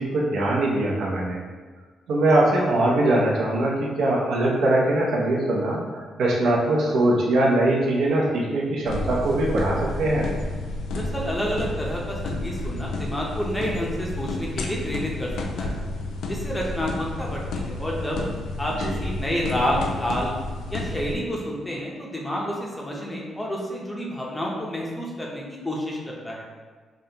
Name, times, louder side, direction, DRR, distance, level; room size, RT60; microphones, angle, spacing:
voice 1, 0.0-1.4 2.1-10.3 18.8-19.0, right 1 dB, 70° right, -2 dB, 0.7 m, -22 dB
sound 1, 8.8-21.1, left 2 dB, 80° left, 0.4 m, -31 dB
voice 2, 10.9-15.3 15.6-15.8 16.3-18.3 18.6-20.3 20.7-26.5, equal, 10° left, -3 dB, 0.5 m, -29 dB
5.0 x 2.3 x 2.8 m, 1.5 s
cardioid pair, 165°, 0 cm